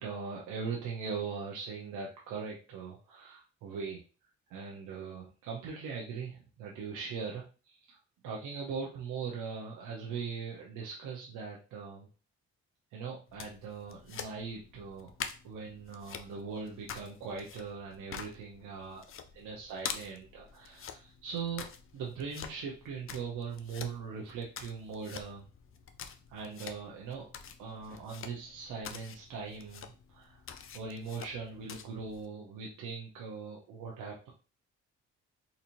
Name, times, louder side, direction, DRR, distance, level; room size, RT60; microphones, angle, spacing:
voice 1, 0.0-4.0 4.5-8.0 8.2-12.1 12.9-15.1 15.4-19.0 19.3-21.7 21.9-25.5 26.3-27.2 27.6-30.4 30.7-34.3, right 5 dB, 85° right, -2 dB, 0.8 m, -40 dB
sound 1, 13.3-32.3, left 7 dB, 45° left, 0.5 m, -47 dB
4.1 x 2.6 x 2.9 m, 0.35 s
cardioid pair, 90°, 30 cm